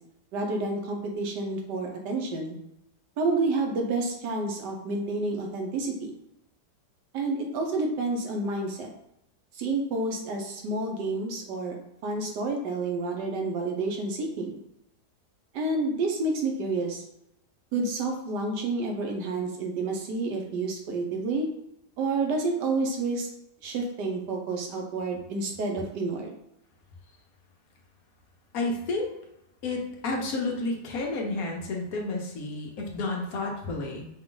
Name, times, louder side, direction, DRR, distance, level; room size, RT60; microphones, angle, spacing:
voice 1, 0.3-2.6 3.2-6.1 7.1-8.9 9.5-11.8 12.0-14.6 15.5-17.0 17.7-21.5 22.0-23.3 23.6-26.3, right 3 dB, 90° right, 2 dB, 1.4 m, -29 dB
voice 2, 28.5-29.1 29.6-34.1, left 2 dB, 65° left, 0 dB, 1.2 m, -31 dB
5.0 x 2.4 x 3.8 m, 0.82 s
omnidirectional pair, 1.8 m